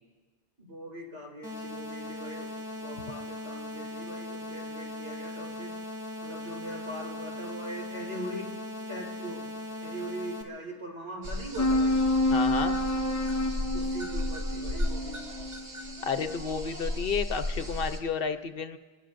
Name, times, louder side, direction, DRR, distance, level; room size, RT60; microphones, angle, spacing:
voice 1, 0.6-2.5 2.8-5.8 6.2-8.5 8.9-9.4 9.8-12.0 13.7-15.2, right 1 dB, 80° right, -2 dB, 4.3 m, -41 dB
sound 1, 1.4-10.4, left 2 dB, 5° right, 2.8 m, -39 dB
sound 2, 11.2-18.0, left 1 dB, 60° right, 1.8 m, -35 dB
sound 3, 11.6-16.4, left 1 dB, 20° left, 0.5 m, -28 dB
voice 2, 12.3-12.8 16.0-18.8, left 5 dB, 60° left, 9 dB, 0.8 m, -31 dB
27.0 x 21.0 x 2.6 m, 1.4 s
omnidirectional pair, 1.2 m